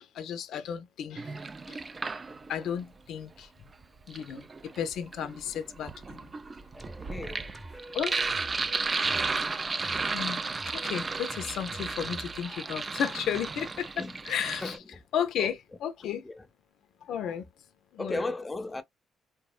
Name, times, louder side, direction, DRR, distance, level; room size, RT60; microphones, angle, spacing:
voice 1, 0.0-1.3 1.7-1.8 2.5-3.5 4.1-4.5 4.8-6.3 7.9-8.2 10.1-10.4 10.7-14.8 15.1-16.2 17.0-17.5 17.9-18.3, left 8 dB, 80° left, 0.4 m, -33 dB
Sink (filling or washing), 1.2-2.7 3.8-14.8, right 4 dB, 30° right, 0.3 m, -34 dB
sound 1, 6.7-12.8, right 1 dB, 10° right, 0.9 m, -47 dB
voice 2, 7.1-7.5 14.0-14.2 14.6-14.8 15.4-15.5 16.2-16.4 18.0-18.8, left 2 dB, 20° left, 0.6 m, -35 dB
3.5 x 2.0 x 2.3 m
cardioid pair, 90°, 0 cm